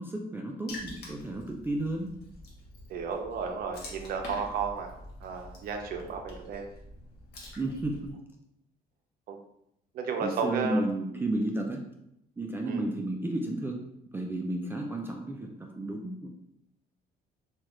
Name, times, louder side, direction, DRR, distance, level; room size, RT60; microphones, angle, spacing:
voice 1, 0.0-2.1 7.6-8.1 10.2-11.8 12.4-13.8 14.1-16.3, right 1 dB, 15° right, 0 dB, 0.3 m, -32 dB
Water / Splash splatter, 0.7-8.1, left 1 dB, 70° left, 1.0 m, -46 dB
voice 2, 2.9-4.9 5.2-6.6 9.3-9.4 9.9-10.8 12.7-12.8, right 5 dB, 60° right, 3 dB, 0.6 m, -33 dB
3.2 x 2.3 x 2.9 m, 0.81 s
cardioid pair, 110°, 17 cm